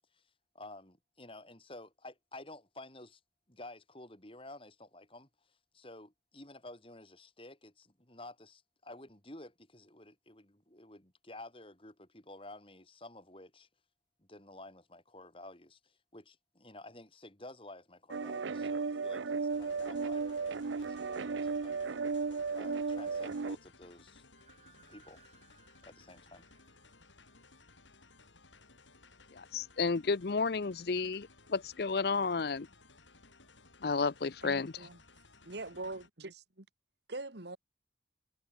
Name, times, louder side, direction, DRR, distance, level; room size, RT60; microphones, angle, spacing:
voice 1, 0.5-3.2 3.5-5.3 5.7-13.7 14.2-21.9 22.5-24.2 24.9-25.2 25.8-26.4, left 2 dB, 30° left, 4.7 m, -52 dB
sound 1, 18.1-23.6, right 4 dB, 85° right, 0.6 m, -35 dB
sound 2, 19.5-36.1, left 3 dB, 90° left, 5.9 m, -60 dB
sound 3, 24.4-28.3, right 6 dB, 35° right, 6.2 m, -66 dB
voice 2, 29.3-32.7 33.8-34.7, left 4 dB, 55° left, 0.6 m, -32 dB
voice 3, 34.4-35.0 35.4-36.7 37.1-37.6, right 2 dB, 65° right, 2.1 m, -43 dB
head